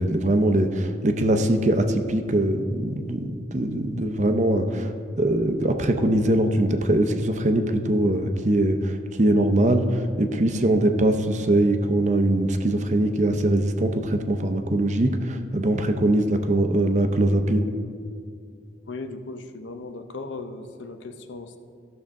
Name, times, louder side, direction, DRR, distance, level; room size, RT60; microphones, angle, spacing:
voice 1, 0.0-4.9 5.2-17.7, right 1 dB, 40° right, 7 dB, 0.6 m, -22 dB
voice 2, 18.9-21.6, left 3 dB, 80° left, 7 dB, 0.7 m, -37 dB
14.5 x 6.4 x 3.6 m, 2.3 s
head